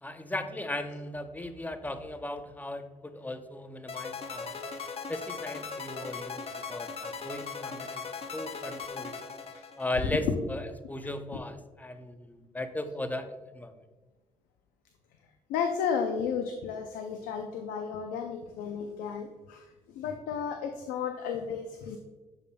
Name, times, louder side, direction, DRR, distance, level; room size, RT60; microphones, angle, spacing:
voice 1, 0.0-4.5 5.1-8.0 8.3-9.2 9.8-13.7, left 1 dB, 10° left, 9 dB, 0.7 m, -37 dB
sound 1, 3.9-10.2, left 5 dB, 45° left, 0.7 m, -39 dB
voice 2, 15.5-19.7 19.9-22.0, left 6 dB, 85° left, 5 dB, 0.5 m, -33 dB
8.2 x 5.2 x 2.2 m, 1.2 s
supercardioid pair, 60°, 14 cm